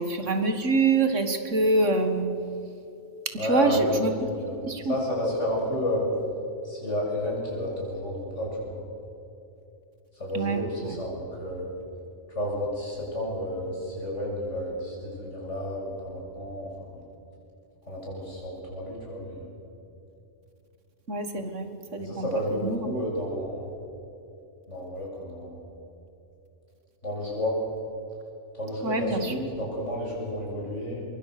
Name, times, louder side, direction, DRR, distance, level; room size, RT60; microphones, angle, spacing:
voice 1, 0.0-2.3 3.4-4.3 4.6-4.9 10.3-11.0 21.1-22.3 22.6-22.9 28.8-29.3, right 3 dB, 65° right, 7 dB, 2.0 m, -26 dB
voice 2, 3.4-4.0 4.4-4.5 4.8-6.1 6.6-8.8 10.2-11.7 12.3-17.0 17.9-19.5 22.0-23.7 24.7-25.6 27.0-27.6 28.6-31.0, equal, 60° left, -4 dB, 7.9 m, -31 dB
24.5 x 22.5 x 6.7 m, 2.9 s
omnidirectional pair, 1.4 m